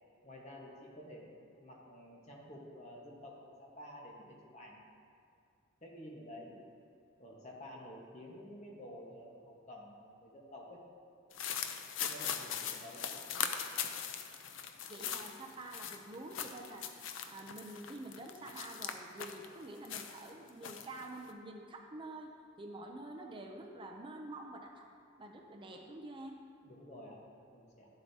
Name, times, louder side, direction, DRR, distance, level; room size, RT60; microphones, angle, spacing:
voice 1, 0.2-1.3 1.6-4.8 5.8-6.6 7.2-10.8 12.0-13.4 26.6-27.9, left 1 dB, 35° left, -2 dB, 1.2 m, -51 dB
sound 1, 11.3-19.5 19.8-21.3, left 8 dB, 75° left, 0.5 m, -40 dB
voice 2, 14.9-16.9 17.3-22.3 22.6-24.9 25.2-26.4, right 2 dB, 25° right, 2 dB, 0.5 m, -47 dB
11.0 x 7.8 x 2.8 m, 2.4 s
head